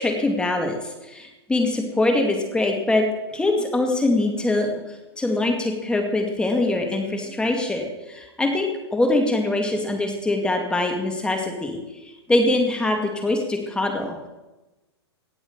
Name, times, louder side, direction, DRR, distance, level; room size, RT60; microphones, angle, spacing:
voice 1, 0.0-3.1 3.3-11.8 12.3-14.1, left 2 dB, 5° left, 3 dB, 2.3 m, -23 dB
18.0 x 6.2 x 6.8 m, 1.0 s
hypercardioid pair, 125°, 14 cm